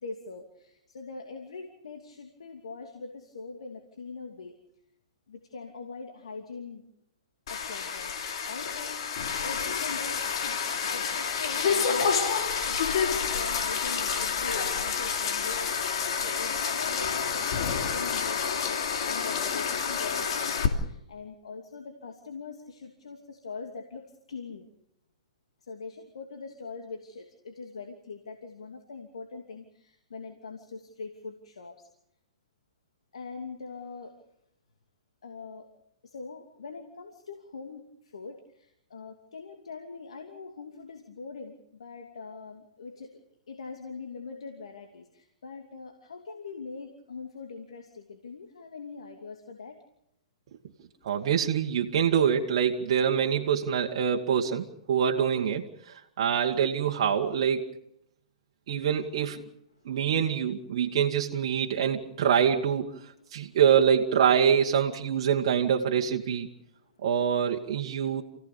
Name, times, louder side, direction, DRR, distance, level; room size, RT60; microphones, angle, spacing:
voice 1, 0.0-4.6 5.3-6.8 7.5-8.2 8.4-9.0 9.4-12.2 12.6-24.7 25.6-31.9 33.1-34.2 35.2-35.7 36.0-43.1 43.5-49.8 59.7-59.9 63.3-63.6 66.8-67.0, left 4 dB, 80° left, 3 dB, 2.8 m, -42 dB
sound 1, 7.5-20.7, left 6 dB, 60° left, 3.0 m, -29 dB
voice 2, 51.0-57.7 58.7-59.5 59.8-66.5 67.0-68.2, right 8 dB, 60° right, 1 dB, 2.0 m, -25 dB
28.5 x 16.5 x 6.9 m, 0.78 s
hypercardioid pair, 120°, 3 cm